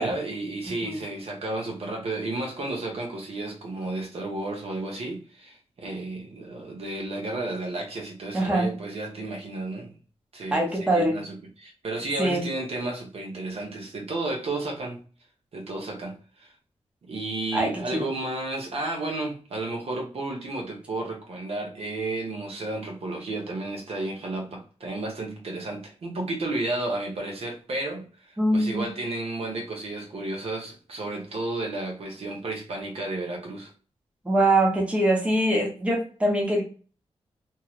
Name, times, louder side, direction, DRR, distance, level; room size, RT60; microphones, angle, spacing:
voice 1, 0.0-9.9 10.3-15.0 15.5-16.5 17.0-33.7, right 2 dB, 65° right, 1 dB, 0.9 m, -32 dB
voice 2, 8.3-8.7 10.5-11.1 12.2-12.4 17.5-18.1 28.4-28.9 34.2-36.6, right 1 dB, 10° right, -2 dB, 0.7 m, -23 dB
3.0 x 2.9 x 2.3 m, 0.39 s
wide cardioid pair, 175°, 11 cm